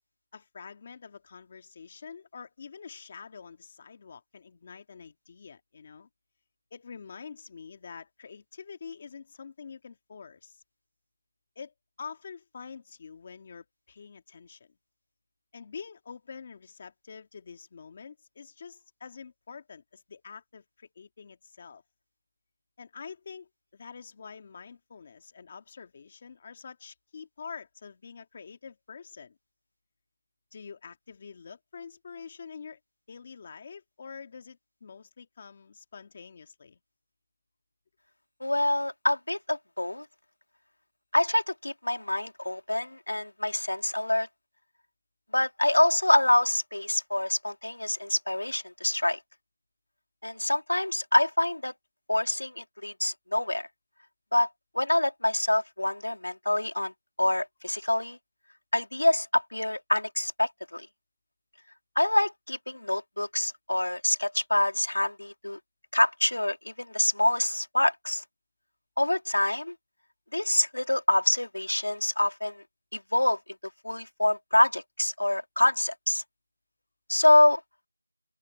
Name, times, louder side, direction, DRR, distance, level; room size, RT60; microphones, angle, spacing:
voice 1, 0.3-6.1 6.7-10.6 11.6-14.7 15.5-21.8 22.8-29.4 30.5-32.8 33.1-36.8, left 6 dB, 10° left, 2.3 m, -46 dB
voice 2, 38.4-40.1 41.1-44.3 45.3-49.2 50.2-51.7 52.1-53.7 54.3-54.5 54.7-56.9 57.2-58.2 58.7-60.9 62.0-65.6 65.9-68.2 69.0-69.7 70.3-72.6 72.9-73.4 73.8-76.2 77.1-77.6, left 1 dB, 60° left, 3.5 m, -26 dB
figure-of-eight pair, 180°, 0 cm